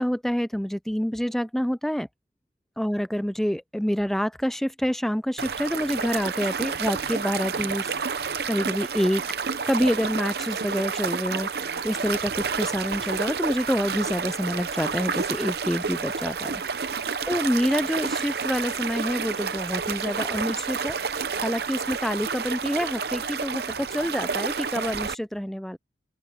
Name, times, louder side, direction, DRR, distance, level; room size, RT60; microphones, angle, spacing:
voice 1, 0.0-2.1 2.8-7.9 8.5-9.2 9.7-11.5 11.8-16.6 17.3-25.8, equal, ahead, 0.3 m, -27 dB
sound 1, 5.4-25.1, right 5 dB, 60° right, 0.7 m, -30 dB
open air
head